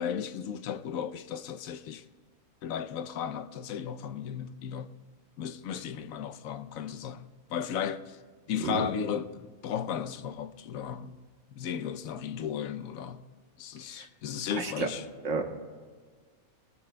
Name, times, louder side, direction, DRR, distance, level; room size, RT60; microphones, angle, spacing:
voice 1, 0.0-2.0 2.6-4.9 5.4-8.2 8.5-11.2 11.5-13.2 13.6-15.1, left 8 dB, 75° left, 1.0 m, -35 dB
voice 2, 14.6-14.9 15.2-15.5, right 5 dB, 60° right, 1.5 m, -30 dB
20.5 x 19.0 x 2.2 m
omnidirectional pair, 1.5 m